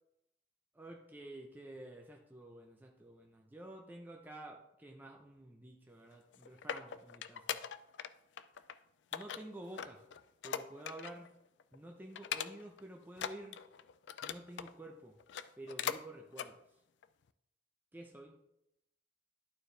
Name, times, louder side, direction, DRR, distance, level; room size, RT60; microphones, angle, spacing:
voice 1, 0.7-7.6 9.1-10.0 10.4-11.3 11.7-13.6 14.2-15.1 15.6-16.6 17.9-18.4, right 1 dB, 10° right, 0 dB, 0.7 m, -50 dB
sound 1, 6.1-8.1 8.4-8.7 9.1-11.3 11.6-11.8 12.2-12.8 13.1-14.7 15.2-16.0 16.3-16.5 17.0-17.1, left 8 dB, 75° left, 0.4 m, -41 dB
11.5 x 4.6 x 3.3 m, 0.81 s
head